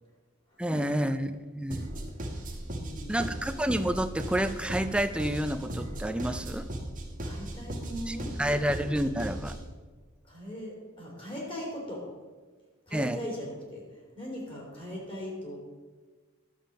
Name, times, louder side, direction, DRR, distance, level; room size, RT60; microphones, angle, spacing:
voice 1, 0.6-1.3 1.6-1.9 3.1-6.7 8.1-9.6 12.9-13.2, right 1 dB, 5° right, 10 dB, 0.4 m, -29 dB
sound 1, 1.7-9.7, right 1 dB, 40° right, 1.4 m, -37 dB
voice 2, 2.7-3.1 7.2-8.3 10.3-12.0 12.9-13.8 14.1-15.6, equal, 25° left, -2 dB, 3.1 m, -39 dB
11.0 x 7.3 x 5.2 m, 1.4 s
head